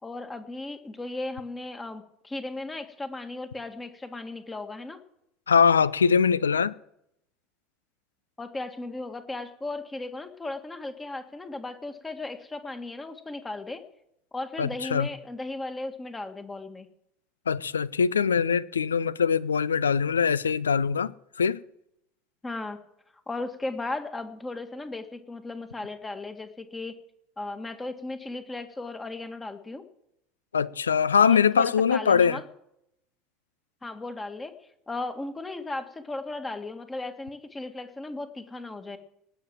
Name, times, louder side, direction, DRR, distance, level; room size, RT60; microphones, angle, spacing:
voice 1, 0.0-5.0 8.4-13.8 14.3-16.9 22.4-22.8 23.3-26.9 27.4-29.8 31.2-32.4 33.8-34.5 34.9-39.0, left 2 dB, 15° left, 1.8 m, -36 dB
voice 2, 5.5-6.7 14.6-15.1 17.5-21.1 21.4-21.6 30.5-32.4, left 6 dB, 80° left, 0.4 m, -22 dB
19.0 x 7.2 x 7.6 m
figure-of-eight pair, 70°, 0 cm